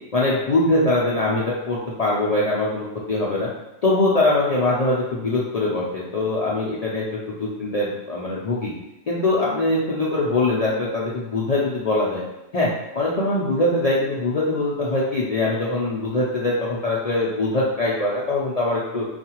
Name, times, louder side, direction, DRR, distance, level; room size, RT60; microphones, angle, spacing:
voice 1, 0.1-3.5 3.8-8.7 9.1-12.2 12.5-19.1, left 2 dB, 60° left, -6 dB, 0.4 m, -22 dB
4.6 x 2.4 x 2.9 m, 0.96 s
omnidirectional pair, 1.3 m